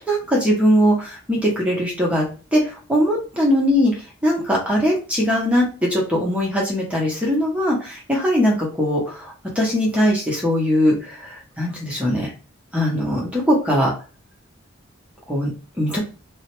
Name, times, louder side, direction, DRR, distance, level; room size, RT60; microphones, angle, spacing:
voice 1, 0.1-2.2 2.5-3.9 4.2-12.3 12.7-13.9 15.3-15.5 15.8-16.0, equal, 5° right, -2 dB, 0.7 m, -20 dB
2.4 x 2.0 x 2.9 m, 0.35 s
head